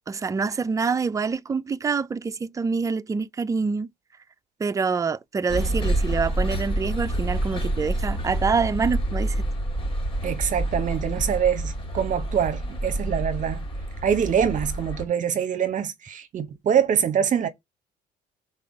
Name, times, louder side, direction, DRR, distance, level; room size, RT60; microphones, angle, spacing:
voice 1, 0.1-3.9 4.6-9.4, right 5 dB, 20° right, 0.5 m, -26 dB
sound 1, 5.5-15.1, right 1 dB, 30° left, 1.8 m, -28 dB
voice 2, 10.2-13.6 14.0-17.5, right 8 dB, 50° right, 0.9 m, -24 dB
5.6 x 4.2 x 5.1 m
cardioid pair, 110°, 17 cm